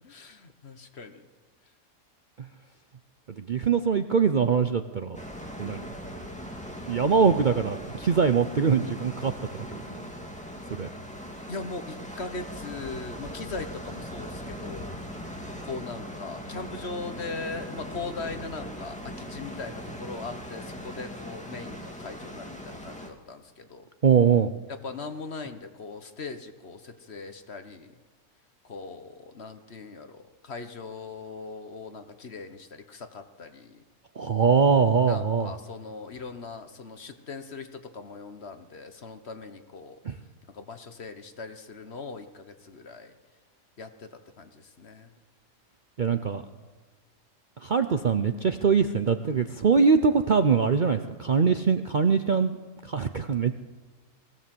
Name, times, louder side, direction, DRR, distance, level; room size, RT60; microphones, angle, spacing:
voice 1, 0.0-1.2 5.6-5.8 11.5-15.0 15.6-23.9 24.7-27.9 28.7-33.8 35.1-40.0 40.5-43.1 43.8-45.1, left 4 dB, 50° left, 8 dB, 1.5 m, -40 dB
voice 2, 3.4-5.2 5.6-5.8 6.9-9.3 9.6-9.8 10.7-10.9 24.0-24.5 34.2-35.5 40.0-40.1 46.0-46.4 47.6-52.6 52.8-53.5, right 6 dB, 45° right, 8 dB, 0.7 m, -23 dB
sound 1, 5.1-23.1, equal, 5° left, 2.1 m, -40 dB
20.5 x 16.5 x 7.8 m, 1.4 s
omnidirectional pair, 1.5 m